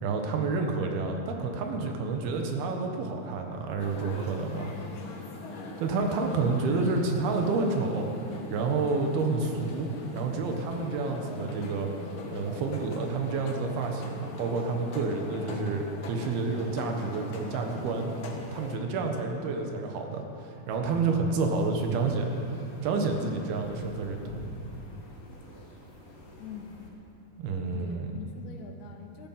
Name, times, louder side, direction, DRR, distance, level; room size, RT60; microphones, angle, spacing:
voice 1, 0.0-4.7 5.8-8.1 8.5-11.9 12.3-18.1 18.5-22.4 22.8-24.4 27.4-28.1, right 4 dB, 75° right, 3 dB, 3.1 m, -29 dB
sound 1, 3.8-18.8, left 3 dB, 70° left, 1.2 m, -41 dB
sound 2, 21.5-26.9, equal, 35° left, 1.6 m, -47 dB
voice 2, 26.4-26.8 27.7-29.3, left 7 dB, 90° left, 2 dB, 3.3 m, -44 dB
14.0 x 13.5 x 5.7 m, 2.8 s
omnidirectional pair, 4.5 m